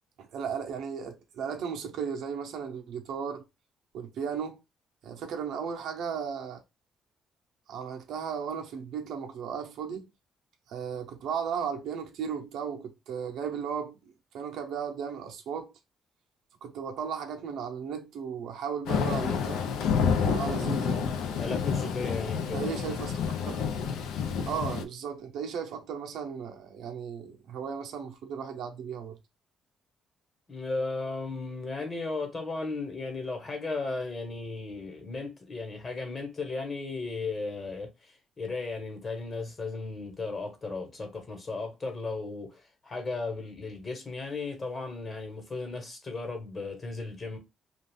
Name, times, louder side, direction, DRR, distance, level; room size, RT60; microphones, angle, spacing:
voice 1, 0.2-3.4 3.9-4.6 5.0-6.6 7.7-10.1 10.7-15.7 16.6-19.7 20.1-21.1 22.4-23.1 23.5-23.7 24.5-29.2, right 7 dB, 80° right, 0.6 m, -35 dB
Thunder / Rain, 18.9-24.8, left 6 dB, 90° left, 0.4 m, -29 dB
voice 2, 21.4-23.2 30.5-47.4, left 3 dB, 35° left, 1.1 m, -35 dB
2.5 x 2.3 x 3.4 m
cardioid pair, 115°, 0 cm